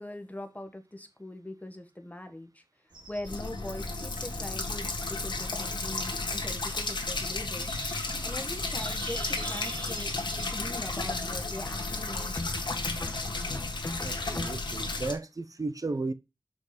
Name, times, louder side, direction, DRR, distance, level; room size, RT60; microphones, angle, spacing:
voice 1, 0.0-2.5 3.1-7.7 8.2-10.1 10.4-12.9, left 1 dB, 20° left, 1.4 m, -42 dB
sound 1, 2.9-13.8, right 1 dB, 80° right, 2.7 m, -46 dB
sound 2, 3.3-15.1, left 3 dB, 75° left, 1.6 m, -33 dB
sound 3, 9.7-10.3 12.3-15.0, left 2 dB, 40° left, 0.9 m, -40 dB
voice 2, 14.0-16.1, right 3 dB, 45° right, 0.9 m, -34 dB
6.0 x 5.2 x 5.1 m
wide cardioid pair, 50°, 8 cm